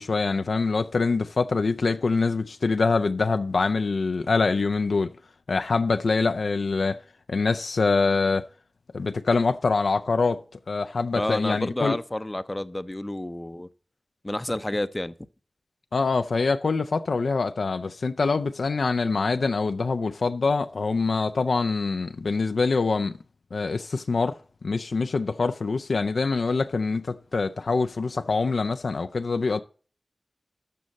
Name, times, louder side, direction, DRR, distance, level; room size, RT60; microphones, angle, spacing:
voice 1, 0.0-5.1 5.5-7.0 7.3-8.5 8.9-10.4 10.7-12.0 15.9-23.2 23.5-24.4 24.6-29.6, left 4 dB, 85° left, 0.4 m, -24 dB
voice 2, 11.1-13.7 14.2-15.2, left 1 dB, 20° left, 0.5 m, -30 dB
12.0 x 6.3 x 4.1 m
wide cardioid pair, 55°, 0 cm